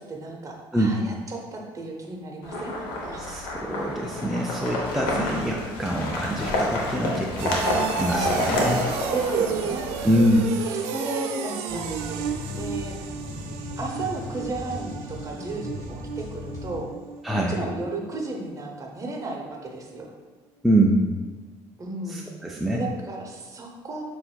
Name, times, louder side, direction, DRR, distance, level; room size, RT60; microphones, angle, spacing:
voice 1, 0.1-3.2 5.1-5.4 9.1-10.0 10.6-12.3 12.5-13.0 13.8-16.9 17.3-20.1 21.8-22.3 22.7-24.0, right 2 dB, 30° right, 1 dB, 0.8 m, -34 dB
sound 1, 2.4-10.4, left 2 dB, 90° left, 0.8 m, -29 dB
voice 2, 3.3-8.9 10.0-10.5 17.2-17.6 20.6-21.0 22.1-22.8, right 1 dB, ahead, -2 dB, 0.4 m, -24 dB
sound 2, 5.8-18.4 18.8-19.2 19.6-19.7, right 7 dB, 80° right, 0.4 m, -33 dB
sound 3, 11.7-16.8, left 2 dB, 30° left, 1.3 m, -37 dB
6.7 x 2.6 x 2.3 m, 1.3 s
supercardioid pair, 80°, 11 cm